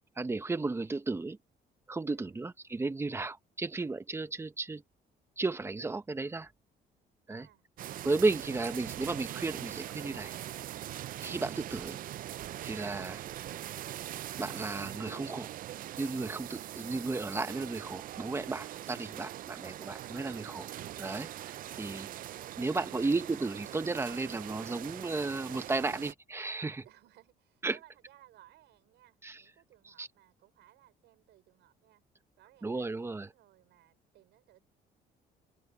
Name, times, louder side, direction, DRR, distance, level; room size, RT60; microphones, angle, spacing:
voice 1, 0.2-1.4 1.9-4.8 5.4-6.5 7.3-7.5 8.0-10.3 11.2-12.0 12.6-13.2 14.4-15.5 16.0-20.7 21.0-22.1 22.6-26.8 27.6-27.8 29.2-29.4 29.9-30.1 32.6-33.3, right 3 dB, 15° right, 0.9 m, -34 dB
voice 2, 7.3-7.6 8.2-8.3 21.8-23.1 26.8-32.0 32.4-34.6, right 14 dB, 85° right, 5.1 m, -61 dB
sound 1, 7.8-26.1, right 13 dB, 50° right, 0.4 m, -42 dB
cardioid pair, 140°, 18 cm